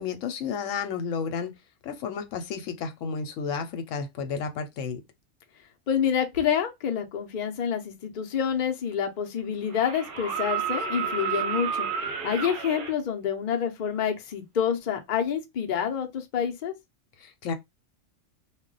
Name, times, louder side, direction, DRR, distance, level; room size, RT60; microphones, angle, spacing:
voice 1, 0.0-1.5 1.8-5.0 17.2-17.5, left 6 dB, 80° left, 1.0 m, -32 dB
voice 2, 5.9-11.9 12.2-16.7, left 8 dB, 50° left, 0.6 m, -28 dB
sound 1, 8.6-8.7 9.7-12.9 14.7-14.8, right 7 dB, 50° right, 0.7 m, -31 dB
2.3 x 2.1 x 3.8 m
omnidirectional pair, 1.3 m